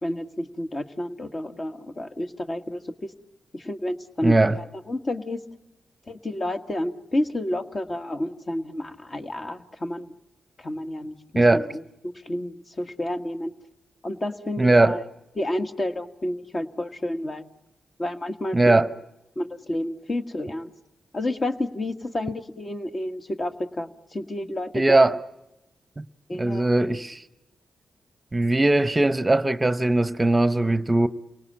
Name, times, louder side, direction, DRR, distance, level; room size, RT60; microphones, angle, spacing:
voice 1, 0.0-3.1 3.5-5.4 6.1-10.1 10.6-11.8 12.1-13.5 14.0-15.1 15.4-17.5 18.0-18.8 19.4-20.7 21.1-25.2 26.3-26.8, left 1 dB, 40° left, 1.8 m, -30 dB
voice 2, 4.2-4.6 11.4-11.6 14.6-15.0 18.5-18.9 24.7-25.2 26.0-26.1 26.4-27.2 28.3-31.1, right 2 dB, 20° right, 0.9 m, -19 dB
29.0 x 18.5 x 8.8 m
cardioid pair, 60°, 0 cm